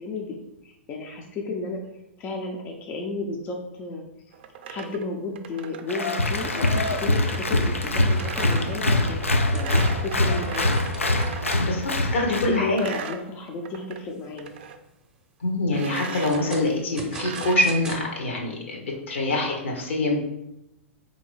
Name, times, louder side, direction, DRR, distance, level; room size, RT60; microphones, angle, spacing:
voice 1, 0.0-4.3 4.7-10.8 12.2-14.6, left 3 dB, 30° left, 1 dB, 0.6 m, -33 dB
sound 1, 4.3-11.7 12.1-14.0 14.3-14.8 15.7-16.5 17.1-17.6, right 7 dB, 50° right, 0.4 m, -39 dB
Applause, 5.9-12.6, left 1 dB, 85° left, 0.5 m, -24 dB
sound 2, 8.1-11.6 12.1-12.2 12.6-12.7 13.2-13.6 14.1-14.8 15.8-18.0, right 2 dB, 10° right, 0.7 m, -42 dB
voice 2, 11.6-12.8 15.4-20.2, left 2 dB, 70° left, 1 dB, 1.2 m, -25 dB
3.9 x 2.8 x 4.6 m, 0.89 s
figure-of-eight pair, 105°, 7 cm